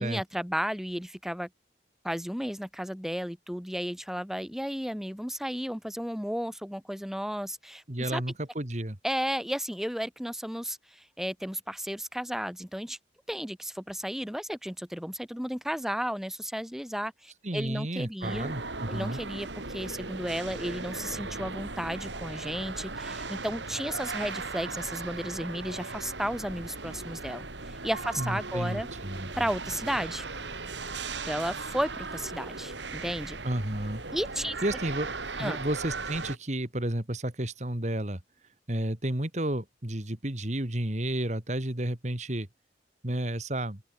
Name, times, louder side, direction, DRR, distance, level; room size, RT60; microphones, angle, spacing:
voice 1, 0.0-1.5 2.0-8.2 9.0-13.0 13.3-18.5 18.9-28.9 29.4-30.3 31.2-33.4 34.1-34.6 35.4-35.6, equal, ahead, 2.5 m, -33 dB
voice 2, 7.9-9.0 17.4-19.2 28.2-29.4 33.4-34.0 34.6-38.2 38.7-42.5 43.0-43.8, right 1 dB, 40° right, 2.2 m, -32 dB
sound 1, 18.2-36.4, right 3 dB, 85° right, 4.1 m, -38 dB
open air
head